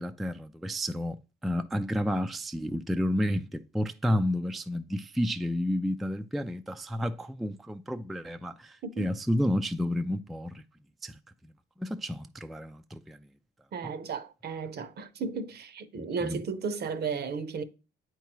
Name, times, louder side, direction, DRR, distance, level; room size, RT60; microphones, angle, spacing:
voice 1, 0.0-10.6 11.0-11.2 11.8-13.2 13.8-13.9 16.0-16.4, equal, ahead, 0.3 m, -31 dB
voice 2, 13.7-17.6, right 5 dB, 55° right, 0.7 m, -34 dB
8.0 x 4.6 x 3.0 m
cardioid pair, 90°, 20 cm